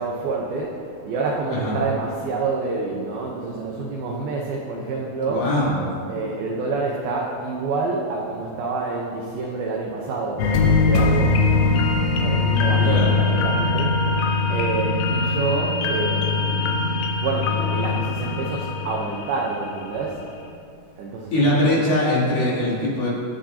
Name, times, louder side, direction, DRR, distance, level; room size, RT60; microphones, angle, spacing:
voice 1, 0.0-5.5 6.1-11.5 12.2-14.0 14.5-20.2 21.0-21.8, right 3 dB, 75° right, -1 dB, 2.2 m, -28 dB
voice 2, 5.3-5.8 12.8-13.1 21.3-23.1, left 1 dB, 45° left, -8 dB, 4.7 m, -21 dB
sound 1, 10.4-19.8 20.2-20.3, left 3 dB, 85° left, 3.5 m, -21 dB
24.0 x 10.5 x 2.8 m, 2.6 s
omnidirectional pair, 5.6 m